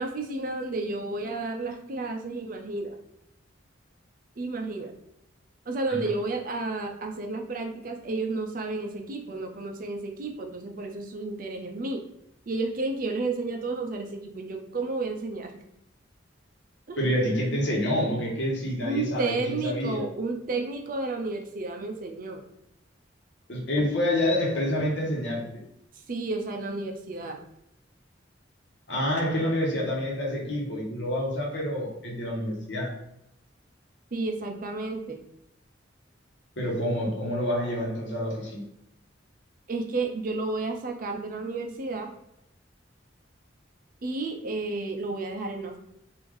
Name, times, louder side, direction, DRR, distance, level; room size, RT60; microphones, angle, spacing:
voice 1, 0.0-2.9 4.4-4.9 5.7-12.0 12.5-15.5 16.9-17.0 18.8-22.4 26.1-27.4 34.1-35.2 39.7-42.1 44.0-45.8, right 3 dB, 45° right, 4 dB, 0.5 m, -31 dB
voice 2, 17.0-20.1 23.5-25.5 28.9-32.9 36.6-38.6, left 1 dB, 65° left, -2 dB, 1.1 m, -28 dB
3.2 x 2.6 x 3.7 m, 0.78 s
head